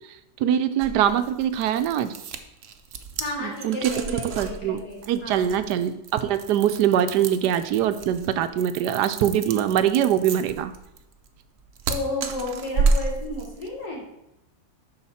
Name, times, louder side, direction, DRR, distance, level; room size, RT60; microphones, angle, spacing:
voice 1, 0.4-2.1 3.4-3.9 4.4-4.8 5.1-10.7, right 10 dB, 90° right, 11 dB, 1.2 m, -23 dB
sound 1, 0.8-13.7, right 4 dB, 55° right, 1.0 m, -31 dB
voice 2, 3.2-5.5 11.9-14.0, left 2 dB, 75° left, -4 dB, 3.3 m, -32 dB
12.5 x 4.9 x 4.2 m, 0.88 s
omnidirectional pair, 1.7 m